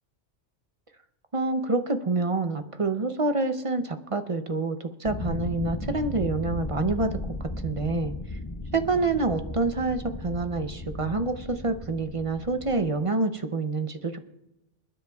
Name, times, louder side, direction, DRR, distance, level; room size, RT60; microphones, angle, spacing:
voice 1, 1.3-8.4 8.7-14.2, right 3 dB, 35° right, 8 dB, 0.5 m, -27 dB
sound 1, 5.0-12.9, left 2 dB, 20° left, 0.7 m, -36 dB
28.5 x 10.0 x 2.3 m, 0.92 s
omnidirectional pair, 1.2 m